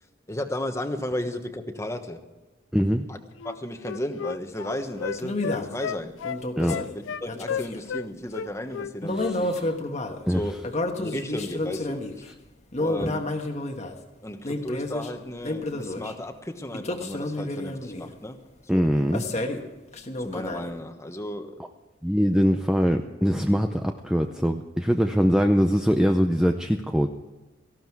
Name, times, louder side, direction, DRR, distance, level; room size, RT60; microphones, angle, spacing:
voice 1, 0.3-2.2 3.1-3.2 3.4-6.1 6.7-9.8 10.3-10.7 11.0-12.3 12.8-13.3 14.2-18.4 18.7-18.9 20.2-21.6, left 1 dB, 15° left, 7 dB, 1.2 m, -34 dB
voice 2, 2.7-3.1 6.6-6.7 9.2-9.5 10.3-10.4 13.0-13.1 18.7-19.2 22.0-27.1, equal, 5° right, 4 dB, 0.6 m, -22 dB
Wind instrument woodwind instrument, 3.4-8.1 8.3-9.4 9.6-9.8, left 7 dB, 80° left, 0.4 m, -33 dB
sound 1, 5.2-5.8 6.2-7.9 9.0-10.2 10.6-12.2 12.7-14.0 14.4-15.1 15.4-16.1 16.7-18.1 19.1-19.7 19.9-20.7, left 1 dB, 35° left, 1.4 m, -30 dB
18.0 x 15.5 x 4.7 m, 1.2 s
head